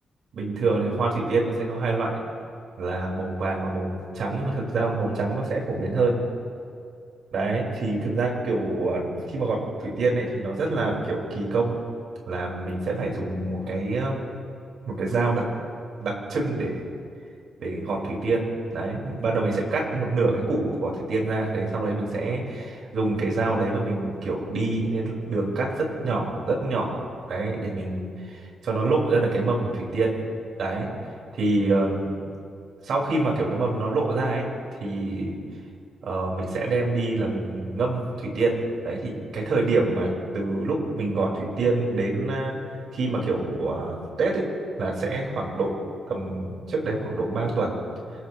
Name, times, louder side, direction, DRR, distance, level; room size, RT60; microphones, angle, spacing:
voice 1, 0.3-2.2 2.8-6.2 7.3-11.7 12.2-14.2 14.9-15.4 16.0-16.8 17.6-27.0 27.3-30.2 30.6-30.9 31.3-32.2 32.8-34.4 34.8-35.4 36.0-42.6 42.9-44.4 44.8-45.8 46.1-47.8, right 3 dB, 60° right, -2 dB, 5.9 m, -26 dB
28.0 x 27.5 x 3.5 m, 2.3 s
cardioid pair, 135°, 0 cm